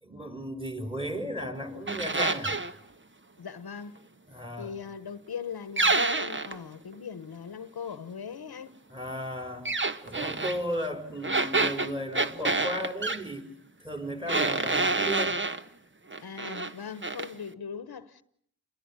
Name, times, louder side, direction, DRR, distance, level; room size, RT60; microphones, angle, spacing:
voice 1, 0.0-2.6 4.3-4.7 8.9-9.7 10.0-13.4 13.8-15.4, equal, 15° right, 5.1 m, -35 dB
sound 1, 1.9-2.7 5.8-6.6 9.7-10.6 11.2-13.2 14.3-15.6 16.1-16.7 17.0-17.3, right 3 dB, 30° right, 1.3 m, -27 dB
voice 2, 3.4-4.0 4.6-8.8 16.2-18.2, left 7 dB, 80° left, 1.2 m, -40 dB
29.0 x 22.0 x 9.0 m
wide cardioid pair, 60°, 37 cm